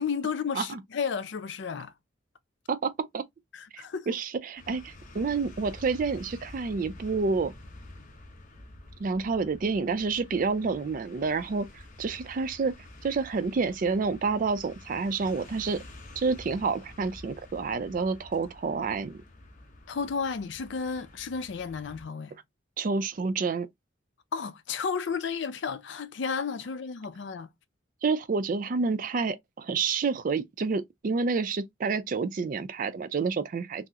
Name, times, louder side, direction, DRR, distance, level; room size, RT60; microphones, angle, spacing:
voice 1, 0.0-1.9 3.5-4.1 19.9-22.4 24.3-27.5, left 5 dB, 65° left, 0.4 m, -32 dB
voice 2, 2.7-3.2 3.7-7.5 9.0-12.7 13.0-15.8 16.2-19.2 22.8-23.7 28.0-33.9, right 4 dB, 45° right, 0.4 m, -29 dB
sound 1, 4.6-22.0, left 1 dB, 45° left, 0.8 m, -49 dB
3.5 x 2.0 x 2.7 m
head